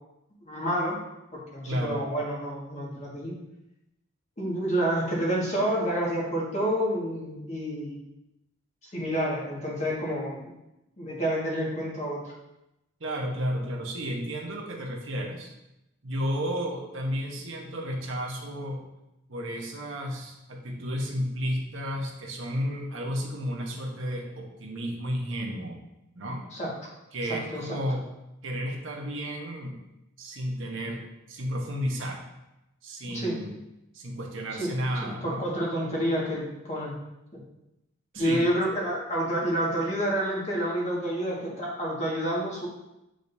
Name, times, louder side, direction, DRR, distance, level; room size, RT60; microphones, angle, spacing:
voice 1, 0.5-1.0 1.3-3.3 4.4-8.0 8.9-10.5 11.0-12.2 26.5-26.9 27.3-27.6 33.1-33.4 34.6-34.7 35.0-37.0 37.3-37.4 38.2-42.7, equal, 35° left, -4 dB, 1.8 m, -29 dB
voice 2, 1.7-2.0 13.0-15.5 16.0-18.9 19.3-25.8 26.1-26.5 27.1-28.0 28.4-29.8 30.2-32.2 32.8-33.6 33.9-35.5 38.1-38.4, equal, 75° right, 0 dB, 1.2 m, -32 dB
8.9 x 5.0 x 2.7 m, 0.90 s
head